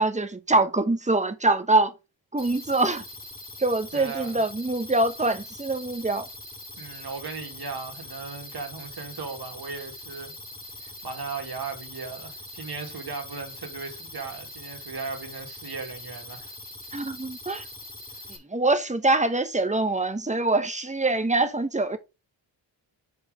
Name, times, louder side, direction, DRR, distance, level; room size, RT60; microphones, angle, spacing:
voice 1, 0.0-1.9 2.3-3.0 3.6-6.3 16.9-17.7 18.5-22.0, right 2 dB, 15° right, 1.0 m, -24 dB
sound 1, 2.4-18.4, left 1 dB, 20° left, 2.3 m, -42 dB
voice 2, 3.9-4.4 6.8-10.3 10.8-16.5, right 4 dB, 50° right, 2.2 m, -37 dB
5.0 x 4.7 x 4.9 m
cardioid pair, 65°, 47 cm